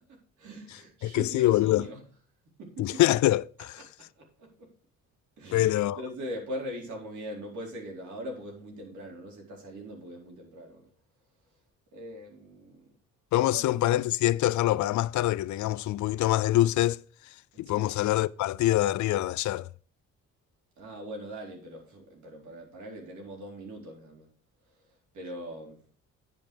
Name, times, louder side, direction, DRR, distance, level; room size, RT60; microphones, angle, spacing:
voice 1, 0.1-2.0 2.6-3.0 4.2-4.7 5.4-10.9 11.9-12.9 13.5-13.8 17.5-17.9 20.8-24.3 25.1-25.9, equal, 75° right, 4.2 m, -41 dB
voice 2, 1.0-1.9 2.8-3.8 5.5-6.0 13.3-17.0 17.6-19.7, left 15 dB, 70° left, 0.5 m, -25 dB
9.7 x 5.6 x 5.2 m
cardioid pair, 90°, 30 cm